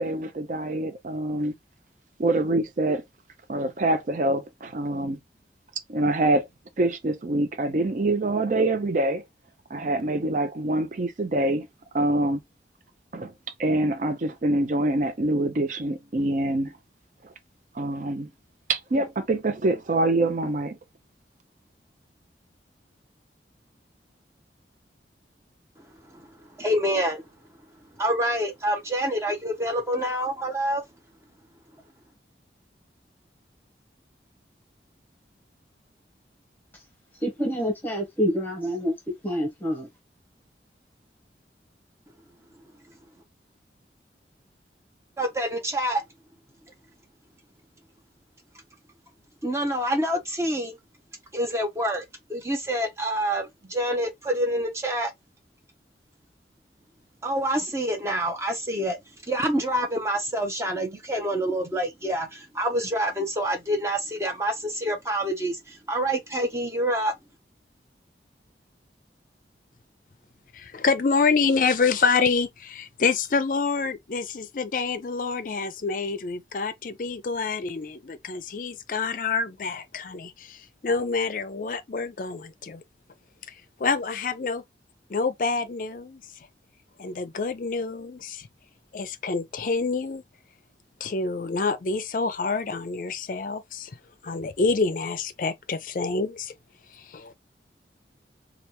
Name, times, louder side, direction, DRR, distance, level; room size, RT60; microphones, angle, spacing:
voice 1, 0.0-1.5 2.2-3.0 3.5-5.2 5.9-6.5 6.8-9.2 9.7-11.7 11.9-12.4 13.1-13.3 13.6-16.7 17.7-18.3 18.7-20.8, right 2 dB, 45° right, 0.5 m, -25 dB
voice 2, 26.6-27.2 28.0-30.8 45.2-46.0 49.4-50.7 51.3-52.0 52.3-55.1 57.2-59.0 59.3-67.1, right 1 dB, 15° right, 0.8 m, -27 dB
voice 3, 37.2-38.9 39.2-39.9, equal, 10° left, 1.2 m, -27 dB
voice 4, 70.5-82.8 83.8-84.6 85.1-86.2 87.0-88.5 88.9-90.2 91.0-93.9 94.2-96.5 96.9-97.3, left 4 dB, 50° left, 0.4 m, -27 dB
3.3 x 2.4 x 2.9 m
head